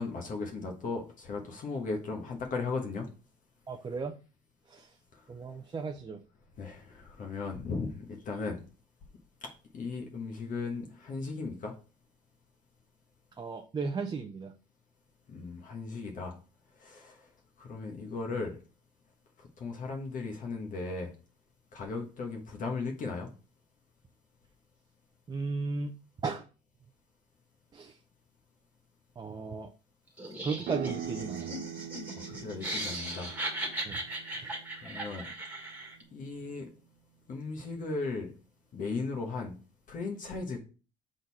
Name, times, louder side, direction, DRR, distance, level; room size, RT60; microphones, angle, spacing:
voice 1, 0.0-3.1 6.6-8.6 9.7-11.7 15.3-16.4 16.8-17.3 17.6-18.6 19.4-21.1 21.7-23.3 32.1-33.3 34.8-35.3 36.1-36.7 37.3-38.3 38.7-39.6 39.9-40.6, left 4 dB, 50° left, 1.2 m, -36 dB
voice 2, 3.7-4.2 4.7-4.9 5.3-6.2 13.4-14.5 25.3-26.0 26.2-26.4 27.7-28.0 29.2-29.7 30.4-31.6 33.8-34.0, right 4 dB, 25° right, 0.6 m, -35 dB
Laughter, 30.2-36.0, right 1 dB, 10° right, 1.6 m, -38 dB
sound 1, 30.6-36.0, right 11 dB, 70° right, 0.7 m, -43 dB
6.3 x 3.9 x 4.1 m
cardioid pair, 110°, 17 cm